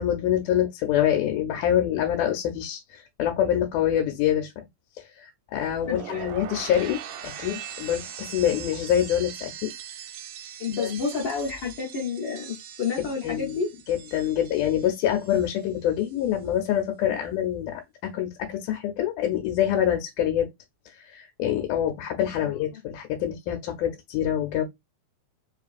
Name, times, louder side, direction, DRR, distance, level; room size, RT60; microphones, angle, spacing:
voice 1, 0.0-4.7 5.0-9.7 10.8-10.9 13.0-13.6 13.9-20.5 20.9-24.6, left 10 dB, 85° left, 2.0 m, -26 dB
sound 1, 5.6-15.7 16.0-16.4, right 10 dB, 80° right, 1.7 m, -41 dB
voice 2, 5.9-6.3 10.6-13.7 22.4-22.8, left 5 dB, 65° left, 1.1 m, -30 dB
4.4 x 2.9 x 2.4 m
omnidirectional pair, 3.5 m